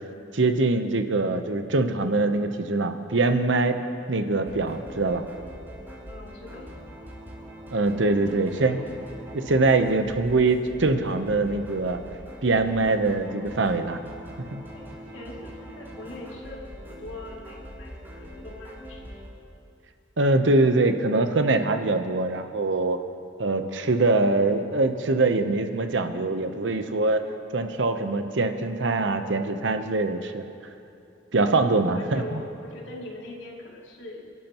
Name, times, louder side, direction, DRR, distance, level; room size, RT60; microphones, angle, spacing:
voice 1, 0.3-3.8 4.1-5.2 7.7-8.8 9.3-12.0 12.4-14.0 14.5-14.6 20.2-23.0 23.4-27.2 27.5-30.4 31.3-32.4, right 3 dB, 75° right, 7 dB, 0.9 m, -23 dB
sound 1, 4.4-19.3, equal, 10° right, 3.0 m, -42 dB
voice 2, 6.1-6.7 8.0-8.9 14.7-19.1 31.8-34.3, left 1 dB, 85° left, -3 dB, 2.6 m, -42 dB
28.0 x 12.0 x 3.0 m, 2.6 s
head